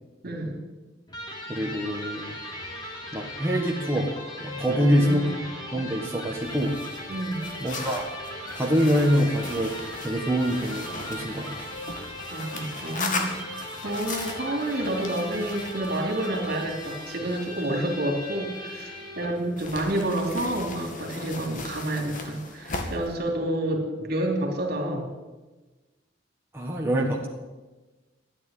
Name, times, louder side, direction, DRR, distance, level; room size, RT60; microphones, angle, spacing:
voice 1, 0.2-0.6 4.7-5.4 7.1-7.5 12.3-25.1, right 1 dB, 55° right, 2 dB, 3.3 m, -29 dB
Electric guitar, 1.1-19.5, left 1 dB, 25° left, 3.6 m, -38 dB
voice 2, 1.5-2.4 3.1-4.1 4.4-5.3 5.7-6.7 7.6-8.1 8.5-11.5 26.5-27.3, equal, 15° right, -2 dB, 1.6 m, -25 dB
sound 1, 6.4-19.1 19.6-23.2, left 3 dB, 45° left, 2.2 m, -38 dB
13.5 x 9.9 x 9.2 m, 1.2 s
head